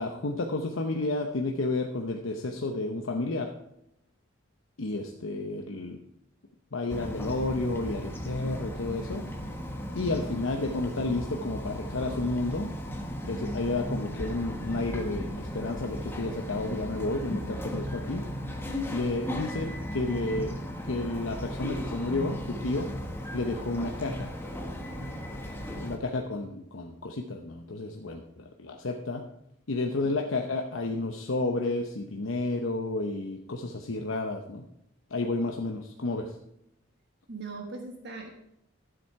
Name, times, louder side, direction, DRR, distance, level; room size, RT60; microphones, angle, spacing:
voice 1, 0.0-3.5 4.8-6.0 6.7-9.3 9.9-12.7 13.3-18.3 18.9-20.6 20.8-22.9 23.3-24.3 25.8-29.2 29.7-34.6 35.1-36.3, left 2 dB, 70° left, 3 dB, 0.8 m, -31 dB
Bird vocalization bird call bird song, 6.9-26.0, equal, 10° left, 1.3 m, -36 dB
voice 2, 37.3-38.3, right 3 dB, 55° right, 2 dB, 1.4 m, -40 dB
12.5 x 7.7 x 4.7 m, 0.78 s
head